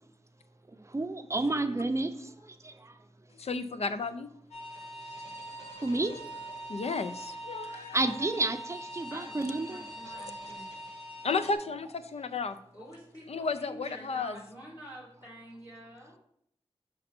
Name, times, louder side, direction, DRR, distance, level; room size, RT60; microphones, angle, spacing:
voice 1, 0.9-3.0 5.8-6.2 7.7-9.8, right 2 dB, 25° right, 9 dB, 0.5 m, -31 dB
voice 2, 3.4-4.3 5.6-5.7 6.7-8.0 11.2-12.6 13.3-14.4, left 4 dB, 70° left, 11 dB, 0.4 m, -33 dB
sound 1, 4.5-11.6, right 1 dB, 90° left, 1.5 m, -43 dB
voice 3, 9.1-10.8 12.7-16.2, equal, 40° left, -5 dB, 1.6 m, -48 dB
5.3 x 5.2 x 4.3 m, 0.70 s
wide cardioid pair, 85°, 11 cm